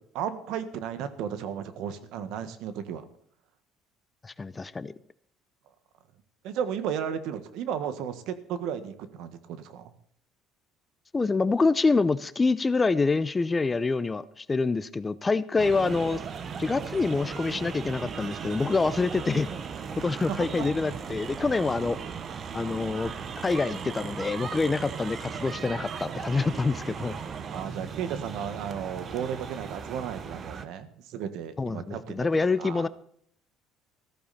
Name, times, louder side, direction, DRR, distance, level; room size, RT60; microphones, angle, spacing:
voice 1, 0.1-3.0 6.4-9.9 20.3-20.7 27.5-32.9, right 8 dB, 70° right, 11 dB, 1.7 m, -34 dB
voice 2, 4.2-4.9 11.1-16.2 16.6-19.5 20.0-22.0 22.5-23.1 23.4-27.2 31.6-32.9, left 3 dB, 20° left, 16 dB, 0.6 m, -26 dB
sound 1, 15.6-30.7, right 6 dB, 40° right, 1.2 m, -37 dB
14.5 x 14.0 x 4.3 m, 0.63 s
cardioid pair, 115°, 0 cm